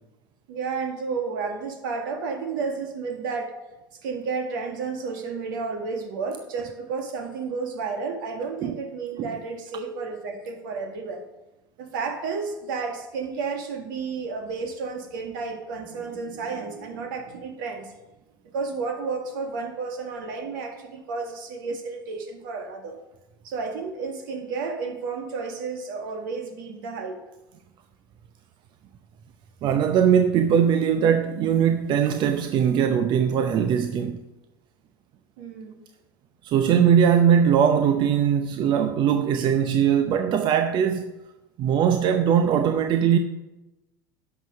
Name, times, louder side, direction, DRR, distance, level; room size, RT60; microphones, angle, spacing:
voice 1, 0.5-3.5 4.0-11.2 11.8-17.9 18.5-23.0 23.4-27.2 35.4-35.8, right 4 dB, 65° right, 2.0 m, -32 dB
voice 2, 29.6-34.2 36.4-41.1 41.6-43.2, right 8 dB, 45° right, 0.7 m, -20 dB
11.0 x 6.0 x 6.3 m
hypercardioid pair, 80°, 11 cm